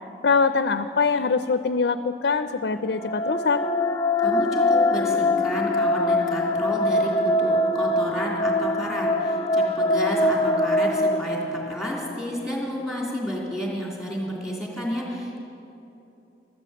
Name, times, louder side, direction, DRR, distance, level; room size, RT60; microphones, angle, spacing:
voice 1, 0.2-3.6, left 4 dB, 70° left, 10 dB, 0.5 m, -23 dB
sound 1, 2.8-12.0, left 1 dB, 20° left, 0.4 m, -23 dB
voice 2, 4.2-7.1 7.4-11.4 11.6-15.4, equal, 5° right, -4 dB, 2.9 m, -31 dB
13.0 x 12.5 x 7.8 m, 2.9 s
head